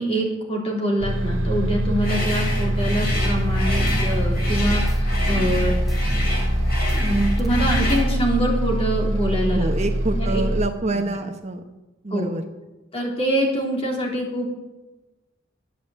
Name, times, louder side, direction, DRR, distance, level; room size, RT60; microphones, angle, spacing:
voice 1, 0.0-5.7 7.0-9.7 10.2-10.4 10.9-11.0 12.1-12.3 12.9-14.6, right 1 dB, 30° left, -1 dB, 3.3 m, -25 dB
Bus, 1.0-10.7, equal, 85° right, 1.7 m, -24 dB
sound 1, 2.0-8.1, left 1 dB, 55° left, 4.1 m, -30 dB
sound 2, 3.1-8.1, left 1 dB, ahead, 1.0 m, -28 dB
voice 2, 9.5-11.6 12.0-12.4, right 2 dB, 35° right, 5 dB, 0.9 m, -26 dB
11.5 x 8.9 x 7.8 m, 1.1 s
head